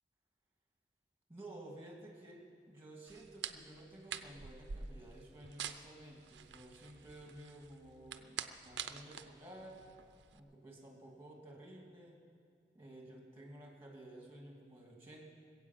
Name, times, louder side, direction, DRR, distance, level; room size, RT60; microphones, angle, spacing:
voice 1, 1.3-9.8 10.3-12.2 12.7-15.3, right 1 dB, 15° right, 0 dB, 2.7 m, -53 dB
sound 1, 3.1-10.4, right 8 dB, 90° right, 0.7 m, -47 dB
20.5 x 8.4 x 7.5 m, 2.2 s
head